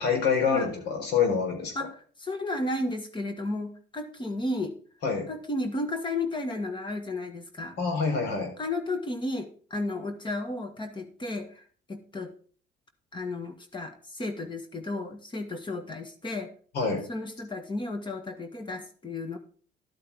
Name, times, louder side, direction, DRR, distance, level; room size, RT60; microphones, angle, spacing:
voice 1, 0.0-1.7 5.0-5.3 7.8-8.5 16.7-17.0, left 5 dB, 80° left, 3 dB, 4.4 m, -26 dB
voice 2, 1.7-4.8 5.3-7.8 8.6-11.6 11.9-12.3 13.1-16.5 17.1-19.4, left 2 dB, 30° left, 7 dB, 1.7 m, -33 dB
12.0 x 8.6 x 3.6 m, 0.43 s
cardioid pair, 100°, 17 cm